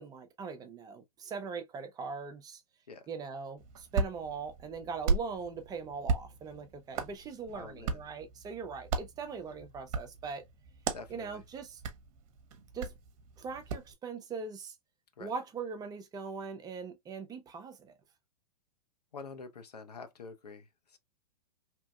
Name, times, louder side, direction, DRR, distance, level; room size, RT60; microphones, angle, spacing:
voice 1, 0.0-2.6 3.1-10.4 11.1-11.8 12.7-12.9 13.4-14.8 15.2-17.9, right 5 dB, 20° right, 0.6 m, -41 dB
Hands, 3.6-13.9, right 4 dB, 55° right, 0.8 m, -37 dB
voice 2, 7.5-8.0 10.9-11.4 15.2-15.3 19.1-21.0, left 4 dB, 85° left, 0.8 m, -47 dB
2.9 x 2.6 x 2.3 m
hypercardioid pair, 115°, 20 cm